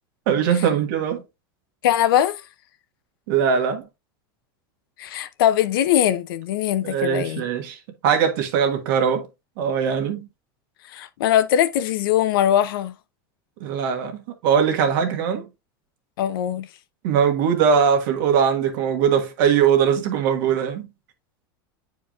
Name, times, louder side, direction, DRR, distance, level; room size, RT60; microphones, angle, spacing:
voice 1, 0.3-1.2 3.3-3.8 6.8-7.8 8.0-9.3 9.6-10.3 13.6-15.5 17.0-20.9, right 7 dB, 70° right, 1.4 m, -21 dB
voice 2, 1.8-2.4 5.0-7.4 10.9-12.9 16.2-16.7, left 11 dB, 80° left, 0.7 m, -21 dB
8.8 x 4.6 x 2.4 m
supercardioid pair, 130°, 12 cm